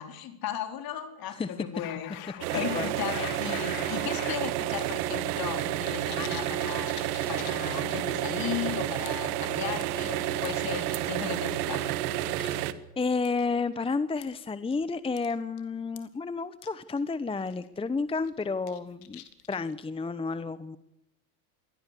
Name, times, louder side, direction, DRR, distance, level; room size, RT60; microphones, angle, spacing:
voice 1, 0.0-11.9, left 10 dB, 50° left, 7 dB, 4.3 m, -36 dB
sound 1, 1.7-4.4 4.8-4.9 5.2-8.2 8.5-8.6 9.1-9.4 9.8-10.6 11.5-12.1 12.5-12.6 13.2-13.4 14.2-14.4 14.7-14.8 15.2-15.3 15.6-15.7 16.0-16.1 16.6-16.7 17.0-17.1 17.4-17.7 18.1-19.7, left 13 dB, 75° left, 3.1 m, -43 dB
sound 2, 2.4-12.7, right 13 dB, 75° right, 1.8 m, -30 dB
voice 2, 2.5-2.9 3.2-3.3 12.4-12.5 13.0-20.8, left 4 dB, 10° left, 14 dB, 0.9 m, -31 dB
23.0 x 17.5 x 8.4 m, 0.83 s
supercardioid pair, 100°, 46 cm